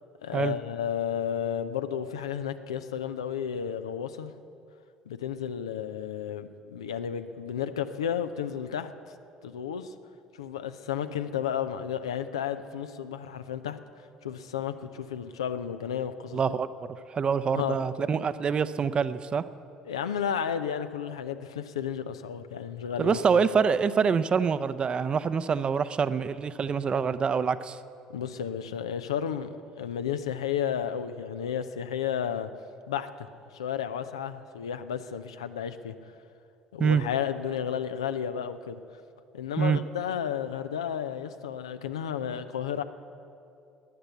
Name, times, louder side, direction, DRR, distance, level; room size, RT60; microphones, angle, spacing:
voice 1, 0.2-4.4 5.1-8.9 9.4-9.9 10.4-13.8 14.2-16.4 17.5-17.8 19.8-23.2 28.1-32.5 32.9-33.3 33.5-35.9 36.7-38.8 39.3-42.8, left 8 dB, 80° left, 10 dB, 0.5 m, -32 dB
voice 2, 16.3-16.7 17.1-19.4 23.0-27.8 36.8-37.0 39.6-39.8, right 6 dB, 35° right, 14 dB, 0.6 m, -25 dB
13.5 x 10.0 x 8.0 m, 2.6 s
figure-of-eight pair, 55°, 3 cm